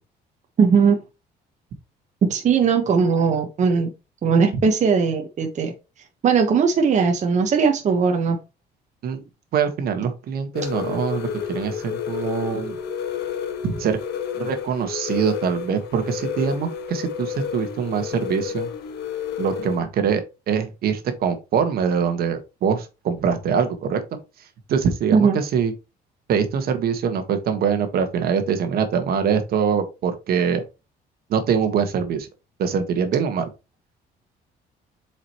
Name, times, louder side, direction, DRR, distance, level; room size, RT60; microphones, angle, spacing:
voice 1, 0.6-1.0 2.3-3.9 4.2-5.7 6.2-8.4 25.1-25.4, right 5 dB, 45° right, 1.3 m, -19 dB
voice 2, 9.5-12.8 13.6-14.0 14.3-18.7 19.4-24.0 24.4-25.7 26.3-30.6 31.3-32.3 32.6-33.5, right 7 dB, 65° right, 1.6 m, -23 dB
sound 1, 10.5-19.8, left 8 dB, 80° left, 1.6 m, -30 dB
7.5 x 5.0 x 3.1 m
cardioid pair, 110°, 17 cm